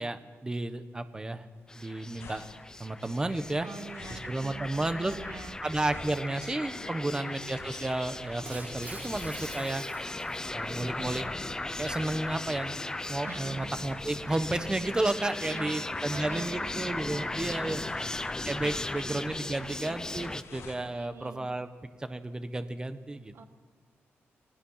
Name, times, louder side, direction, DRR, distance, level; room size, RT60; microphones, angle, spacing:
voice 1, 0.0-1.4 1.7-2.4 2.8-3.7 4.1-5.1 5.6-9.8 10.5-11.2 11.8-12.8 13.1-18.1 18.4-21.7 22.0-23.3, right 2 dB, 15° right, 9 dB, 1.4 m, -32 dB
sound 1, 1.5-20.9, left 4 dB, 85° left, 2.8 m, -53 dB
sound 2, 1.7-20.4, left 2 dB, 15° left, 0.6 m, -37 dB
voice 2, 3.6-5.6 6.8-7.3 13.2-13.7 15.4-16.8 17.1-18.1 18.6-19.0 20.8-21.5 23.3-23.5, right 5 dB, 60° right, 8 dB, 1.8 m, -46 dB
Shatter, 8.4-10.8, right 3 dB, 40° right, 7.2 m, -46 dB
30.0 x 20.0 x 5.8 m, 1.5 s
wide cardioid pair, 120°, 5 cm